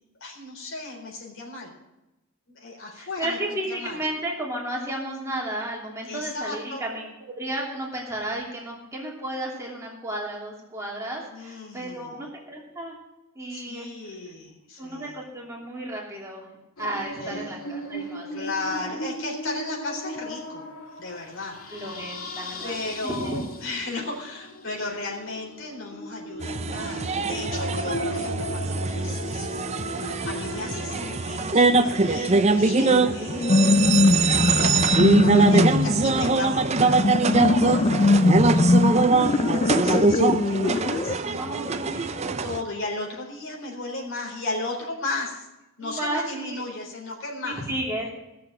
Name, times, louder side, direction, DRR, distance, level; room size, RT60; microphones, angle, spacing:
voice 1, 0.2-1.7 2.5-4.0 6.0-6.8 11.3-12.2 13.5-15.2 17.2-17.5 18.3-20.7 21.0-22.0 22.6-38.1 38.6-39.0 39.4-42.1 42.4-45.5 45.8-47.6, left 2 dB, 60° left, -1 dB, 3.9 m, -35 dB
voice 2, 2.9-13.0 13.4-13.9 14.8-16.5 16.8-18.5 18.8-19.0 21.7-22.8 23.0-23.4 41.4-42.4 45.8-46.6 47.4-48.1, right 1 dB, 15° right, -3 dB, 2.8 m, -33 dB
sound 1, 16.8-34.0, equal, 80° left, 2.7 m, -37 dB
sound 2, 26.4-42.6, right 3 dB, 30° right, 0.6 m, -23 dB
sound 3, 33.3-41.1, left 2 dB, 30° left, 0.4 m, -21 dB
17.0 x 6.9 x 7.6 m, 0.95 s
head